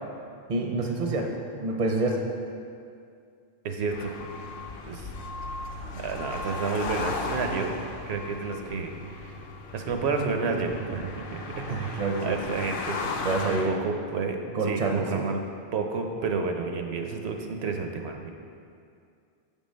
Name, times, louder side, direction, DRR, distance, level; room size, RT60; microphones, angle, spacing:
voice 1, 0.5-1.3 1.6-2.2 11.7-12.4 13.2-13.7 14.5-15.2, right 3 dB, 50° right, 1 dB, 0.5 m, -27 dB
voice 2, 3.6-4.1 4.9-5.1 5.9-7.7 8.1-9.4 9.7-15.4 15.7-18.3, right 4 dB, 90° right, 4 dB, 0.9 m, -31 dB
sound 1, 3.9-13.6, left 3 dB, 65° left, 0.7 m, -36 dB
6.7 x 3.7 x 5.1 m, 2.4 s
omnidirectional pair, 1.1 m